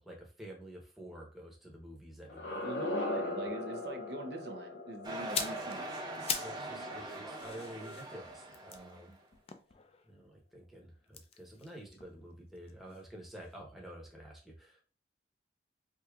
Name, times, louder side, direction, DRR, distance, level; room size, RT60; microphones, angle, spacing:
voice 1, 0.0-2.7 3.2-3.4 5.5-5.7 6.3-9.1 10.0-14.8, equal, ahead, 0.9 m, -50 dB
sound 1, 2.2-7.2, left 2 dB, 70° left, 0.6 m, -40 dB
voice 2, 2.6-5.9 6.2-6.5 8.7-9.2, right 2 dB, 70° right, 0.7 m, -43 dB
sound 2, 5.0-9.1, right 2 dB, 25° right, 0.9 m, -42 dB
sound 3, 5.1-6.7 7.0-10.2 11.0-13.1 13.3-13.5, left 7 dB, 35° left, 0.3 m, -42 dB
4.7 x 2.8 x 2.3 m
head